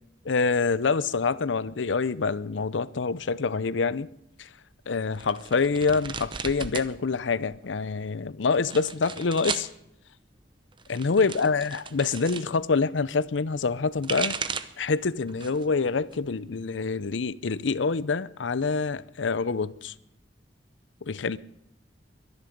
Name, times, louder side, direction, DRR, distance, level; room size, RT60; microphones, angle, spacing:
voice 1, 0.2-4.1 4.4-4.5 4.9-9.7 10.9-14.4 14.8-19.9 21.0-21.4, left 4 dB, 85° left, 0.6 m, -26 dB
sound 1, 5.2-6.9 7.2-7.9 8.5-9.7 10.7-12.5 13.7-14.8 15.3-15.7 16.1-17.1, right 5 dB, 25° right, 0.8 m, -35 dB
23.0 x 11.0 x 5.2 m
head